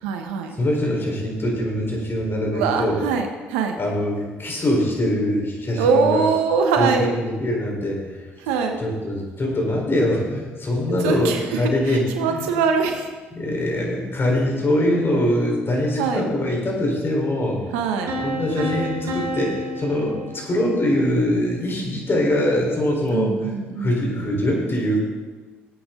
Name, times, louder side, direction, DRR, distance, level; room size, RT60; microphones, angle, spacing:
voice 1, 0.0-0.6 2.5-3.8 5.8-7.1 8.4-8.8 11.0-13.1 16.0-16.2 17.7-18.2 23.1-24.3, right 5 dB, 80° right, 5 dB, 1.2 m, -23 dB
voice 2, 0.6-3.0 3.8-6.2 6.8-8.3 8.8-12.5 13.3-17.6 18.2-25.0, left 1 dB, 40° left, -1 dB, 4.3 m, -23 dB
sound 1, 18.1-21.0, equal, 65° right, 2.4 m, -30 dB
18.0 x 8.8 x 3.9 m, 1.3 s
hypercardioid pair, 55°, 6 cm